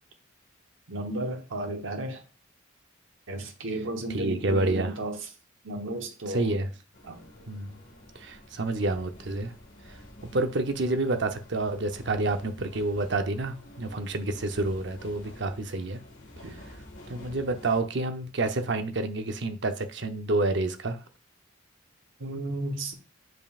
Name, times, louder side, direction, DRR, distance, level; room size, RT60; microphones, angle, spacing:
voice 1, 0.9-2.2 3.3-5.2 5.6-6.5 7.0-7.2 16.4-16.5 22.2-22.9, right 1 dB, 75° right, 1.1 m, -33 dB
voice 2, 4.1-4.9 6.3-6.7 7.5-7.8 8.1-9.5 10.2-16.0 17.1-21.0, right 2 dB, 60° right, 0.7 m, -28 dB
sound 1, 6.9-17.8, left 1 dB, 65° left, 1.7 m, -49 dB
7.7 x 5.3 x 2.4 m
head